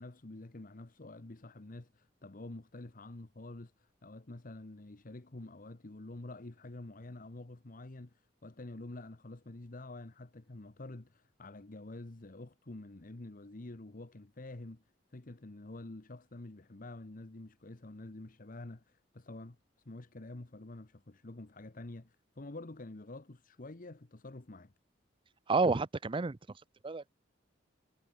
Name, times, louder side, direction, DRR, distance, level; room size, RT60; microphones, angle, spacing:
voice 1, 0.0-14.8 15.1-19.6 19.8-24.7, left 2 dB, 45° left, 1.1 m, -48 dB
voice 2, 25.5-26.4 26.8-27.1, right 3 dB, 25° right, 0.5 m, -29 dB
head